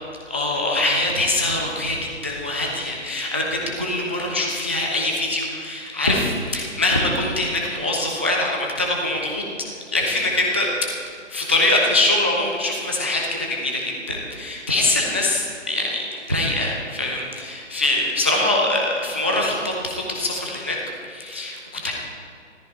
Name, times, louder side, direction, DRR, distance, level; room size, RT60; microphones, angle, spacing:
voice 1, 0.3-9.4 9.9-10.7 11.3-20.8 21.0-21.9, left 2 dB, 10° right, -1 dB, 0.4 m, -23 dB
14.0 x 13.5 x 4.4 m, 2.4 s
figure-of-eight pair, 140°, 37 cm